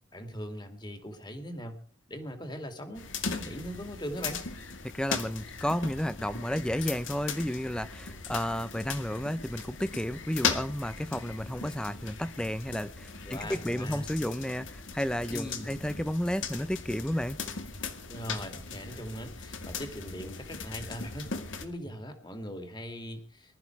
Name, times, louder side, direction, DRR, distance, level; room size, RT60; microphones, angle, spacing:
voice 1, 0.1-1.7 2.1-4.4 13.2-14.1 15.3-15.7 18.1-21.3 21.6-23.6, equal, 20° left, 7 dB, 2.5 m, -40 dB
sound 1, 3.0-21.7, left 5 dB, 75° left, 2.1 m, -38 dB
voice 2, 4.8-17.4, equal, 5° left, 15 dB, 0.6 m, -32 dB
20.5 x 13.0 x 4.7 m, 0.42 s
head